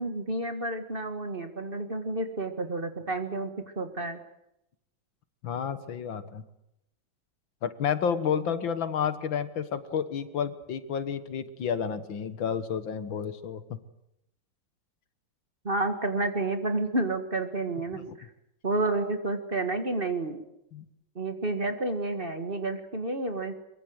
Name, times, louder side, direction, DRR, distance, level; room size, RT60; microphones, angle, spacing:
voice 1, 0.0-3.5 3.8-4.2 15.6-18.3 18.6-20.4 21.2-23.6, right 2 dB, 30° right, 7 dB, 1.9 m, -30 dB
voice 2, 5.4-6.4 7.6-13.6 17.9-18.2 20.7-20.9, left 7 dB, 75° left, 12 dB, 2.1 m, -30 dB
23.5 x 23.0 x 8.0 m, 0.82 s
omnidirectional pair, 2.1 m